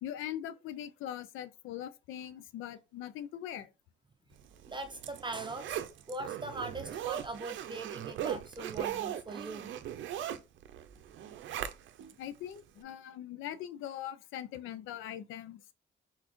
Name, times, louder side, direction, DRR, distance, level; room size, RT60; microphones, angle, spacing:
voice 1, 0.0-3.7 12.2-15.6, left 11 dB, 85° left, 0.5 m, -41 dB
Zipper (clothing), 4.5-12.1 12.6-12.7, right 10 dB, 70° right, 0.5 m, -39 dB
voice 2, 4.7-5.8 6.1-9.8, right 2 dB, 25° right, 0.6 m, -41 dB
4.1 x 3.8 x 3.0 m
cardioid pair, 90°, 20 cm